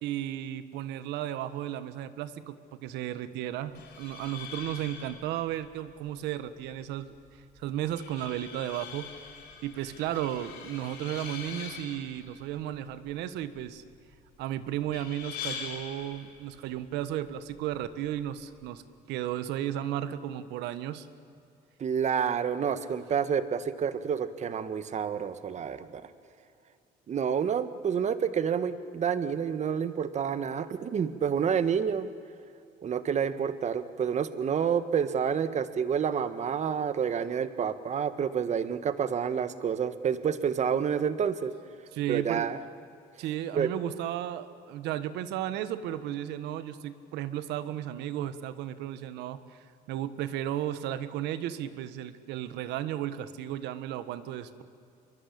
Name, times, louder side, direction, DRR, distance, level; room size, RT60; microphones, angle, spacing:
voice 1, 0.0-7.1 7.6-9.1 9.6-13.8 14.4-21.1 41.9-42.5 43.2-49.6 49.9-54.6, right 12 dB, 90° right, 13 dB, 1.4 m, -34 dB
sound 1, 3.6-18.6, left 6 dB, 80° left, 6.2 m, -45 dB
voice 2, 21.8-26.0 27.1-32.1 32.8-41.5 42.1-42.6 43.5-43.7, right 7 dB, 45° right, 12 dB, 1.5 m, -29 dB
27.0 x 22.5 x 8.6 m, 2.6 s
cardioid pair, 110°, 17 cm